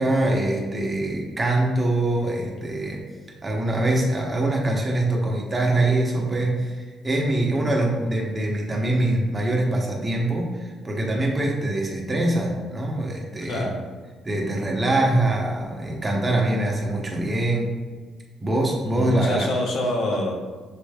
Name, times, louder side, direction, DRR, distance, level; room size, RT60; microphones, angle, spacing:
voice 1, 0.0-3.0 3.4-13.6 14.2-17.7 18.4-19.5, right 1 dB, 25° right, -1 dB, 1.0 m, -23 dB
voice 2, 13.4-13.8 18.8-20.4, left 1 dB, 75° left, -1 dB, 0.9 m, -26 dB
6.7 x 3.2 x 2.3 m, 1.5 s
cardioid pair, 90°, 0 cm